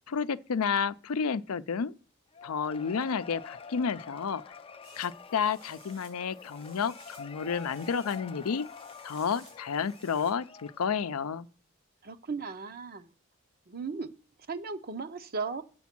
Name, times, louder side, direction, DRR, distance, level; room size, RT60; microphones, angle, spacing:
voice 1, 0.1-1.9 2.4-4.6 5.0-8.7 9.0-11.5, left 6 dB, 85° left, 0.5 m, -31 dB
Cheering / Applause / Crowd, 2.3-11.2, left 5 dB, 25° left, 0.4 m, -48 dB
sound 1, 4.8-10.3, right 3 dB, 85° right, 6.1 m, -57 dB
voice 2, 12.0-13.1 13.7-14.1 14.5-15.6, right 4 dB, 45° right, 0.7 m, -36 dB
7.7 x 7.2 x 6.0 m
head